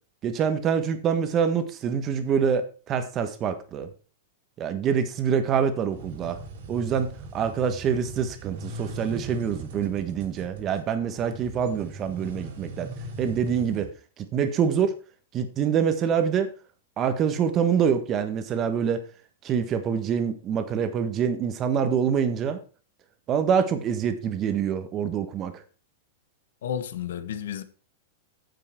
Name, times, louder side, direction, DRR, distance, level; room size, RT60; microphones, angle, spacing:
voice 1, 0.2-3.9 4.6-6.4 6.7-12.9 13.2-13.9 14.2-14.9 15.3-16.5 17.0-19.1 19.4-22.6 23.3-25.6, right 7 dB, 25° right, 1.4 m, -25 dB
sound 1, 5.9-13.9, right 2 dB, 65° right, 3.0 m, -40 dB
voice 2, 26.6-27.6, left 9 dB, 80° left, 1.3 m, -32 dB
9.1 x 7.5 x 4.6 m
supercardioid pair, 150°, 0 cm